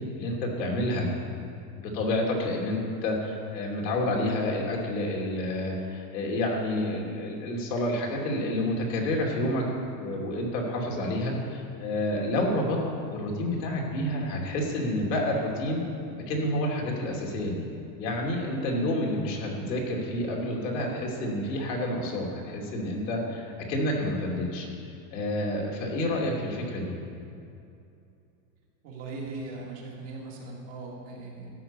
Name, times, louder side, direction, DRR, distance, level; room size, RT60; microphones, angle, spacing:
voice 1, 0.1-1.1 1.8-9.6 10.0-12.8 13.1-15.8 16.3-17.6 18.0-24.7 25.1-26.9, left 1 dB, 80° left, -1 dB, 2.9 m, -29 dB
voice 2, 28.8-31.5, right 3 dB, 30° right, -2 dB, 1.8 m, -39 dB
13.0 x 5.8 x 8.4 m, 2.6 s
supercardioid pair, 180°, 49 cm